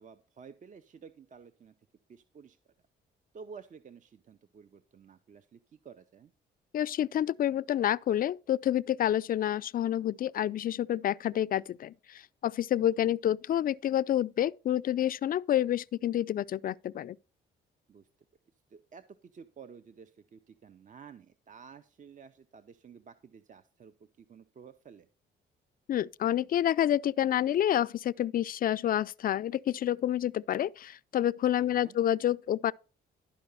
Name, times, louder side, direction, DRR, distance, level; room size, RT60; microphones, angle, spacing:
voice 1, 0.0-1.7 2.1-2.6 3.3-6.3 13.0-13.2 17.9-18.1 18.7-25.1 31.6-32.0, right 6 dB, 40° right, 0.6 m, -52 dB
voice 2, 6.7-17.2 25.9-32.7, left 11 dB, 45° left, 0.4 m, -28 dB
11.5 x 4.8 x 5.3 m
cardioid pair, 90°, 20 cm